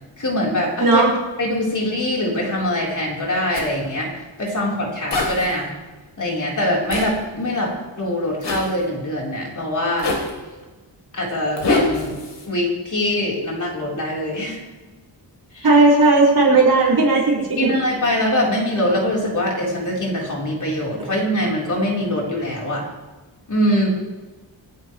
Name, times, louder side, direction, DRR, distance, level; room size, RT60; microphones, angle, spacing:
voice 1, 0.2-1.0 1.4-5.7 6.2-10.1 11.1-12.2 12.5-14.6 15.5-15.7 16.5-16.6 17.6-22.8 23.5-23.9, left 1 dB, 40° left, -3 dB, 4.0 m, -23 dB
Zipper (clothing), 3.5-3.7 5.1-5.5 6.9-7.1 8.4-8.7 10.0-10.3 11.6-12.5, left 2 dB, 70° left, 3.6 m, -23 dB
voice 2, 15.6-17.7, right 3 dB, 55° right, -4 dB, 5.7 m, -15 dB
27.0 x 11.0 x 3.2 m, 1.2 s
wide cardioid pair, 170°, 44 cm